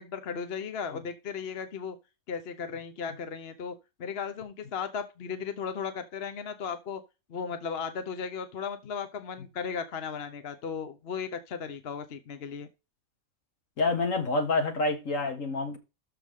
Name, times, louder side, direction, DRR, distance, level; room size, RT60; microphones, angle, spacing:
voice 1, 0.0-2.0 2.3-7.0 7.3-12.7, left 6 dB, 50° left, 1.0 m, -36 dB
voice 2, 13.8-15.8, left 3 dB, 65° left, 1.9 m, -27 dB
13.0 x 4.6 x 3.6 m
omnidirectional pair, 1.5 m